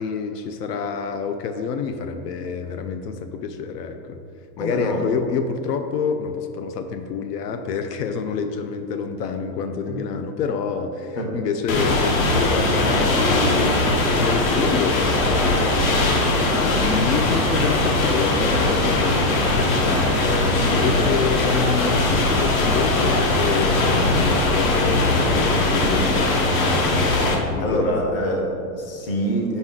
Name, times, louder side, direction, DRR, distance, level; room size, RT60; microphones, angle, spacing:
voice 1, 0.0-4.2 4.6-13.8 14.2-27.9, left 5 dB, 80° left, 7 dB, 0.6 m, -28 dB
voice 2, 4.6-5.1 9.9-10.0 11.2-11.3 27.6-29.6, equal, 35° left, 1 dB, 0.8 m, -25 dB
sound 1, 11.7-27.4, left 2 dB, 60° left, 1.0 m, -20 dB
6.2 x 5.3 x 3.7 m, 2.6 s
supercardioid pair, 180°, 47 cm